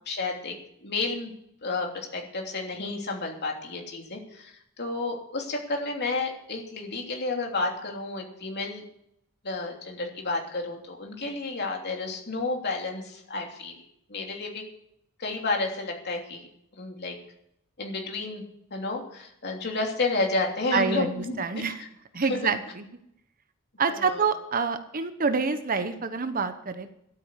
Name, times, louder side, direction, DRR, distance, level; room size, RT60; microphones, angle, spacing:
voice 1, 0.0-0.5 0.8-1.3 1.6-8.8 9.4-13.8 14.1-14.6 15.2-16.4 16.7-17.2 17.8-18.4 18.7-21.9 22.3-22.5 23.9-24.2, left 3 dB, 50° left, 1 dB, 3.1 m, -31 dB
voice 2, 20.7-21.8 22.1-22.9 23.8-26.9, right 5 dB, 40° right, 10 dB, 1.0 m, -27 dB
13.0 x 8.9 x 8.1 m, 0.76 s
head